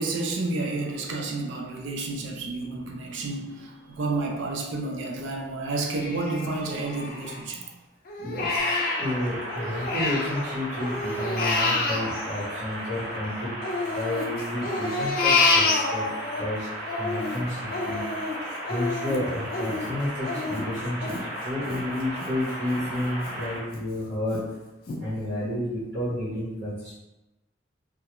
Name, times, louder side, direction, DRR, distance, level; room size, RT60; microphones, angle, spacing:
voice 1, 0.0-7.7, right 3 dB, 70° right, 1 dB, 0.4 m, -30 dB
Crying sobbing, 6.0-7.6 8.1-10.4 10.7-13.2 13.6-16.4 16.8-22.3 22.7-22.8 23.3-23.8 24.3-24.4 24.9-25.0, left 3 dB, 50° left, 0.4 m, -28 dB
voice 2, 8.2-13.5 13.9-16.1 16.4-16.7 17.0-18.0 18.7-24.5 25.0-26.9, left 1 dB, 90° right, -9 dB, 0.9 m, -31 dB
sound 1, 8.6-23.6, equal, 55° right, 0.8 m, -36 dB
2.3 x 2.1 x 2.9 m, 1.0 s
head